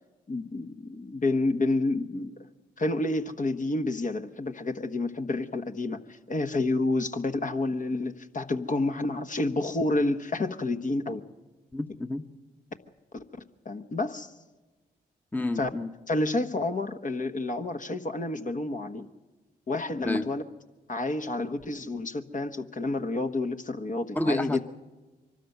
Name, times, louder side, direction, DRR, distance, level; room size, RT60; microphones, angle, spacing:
voice 1, 0.3-2.3 2.8-11.2 13.1-13.2 13.6-14.3 15.6-15.7 16.1-19.1 19.7-20.4 20.9-24.6, left 2 dB, 45° left, 6 dB, 1.3 m, -29 dB
voice 2, 11.7-12.2 15.3-15.9 20.0-20.2 24.1-24.6, left 1 dB, 10° left, 8 dB, 1.0 m, -29 dB
23.5 x 13.0 x 9.2 m, 1.2 s
supercardioid pair, 50°, 19 cm